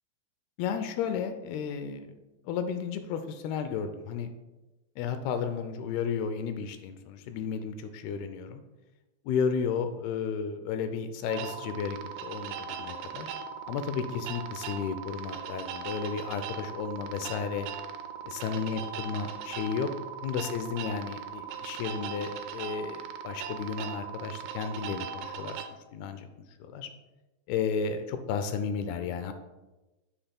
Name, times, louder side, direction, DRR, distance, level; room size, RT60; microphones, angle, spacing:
voice 1, 0.6-2.1 2.5-4.3 5.0-8.6 9.3-13.3 13.7-17.7 18.2-19.9 20.2-25.6 25.9-26.3 26.6-26.9 27.5-29.3, left 6 dB, 85° left, 8 dB, 2.5 m, -33 dB
sound 1, 11.3-25.7, right 7 dB, 85° right, 2.6 m, -39 dB
10.0 x 7.9 x 2.2 m, 1.1 s
omnidirectional pair, 4.6 m